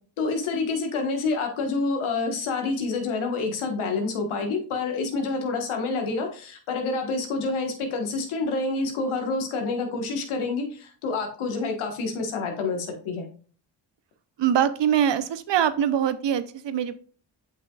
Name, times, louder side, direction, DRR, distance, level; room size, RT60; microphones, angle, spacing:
voice 1, 0.2-13.3, left 3 dB, 85° left, 4 dB, 1.5 m, -28 dB
voice 2, 14.4-16.9, right 9 dB, 65° right, 13 dB, 0.8 m, -23 dB
7.5 x 5.9 x 2.4 m, 0.41 s
supercardioid pair, 50°, 48 cm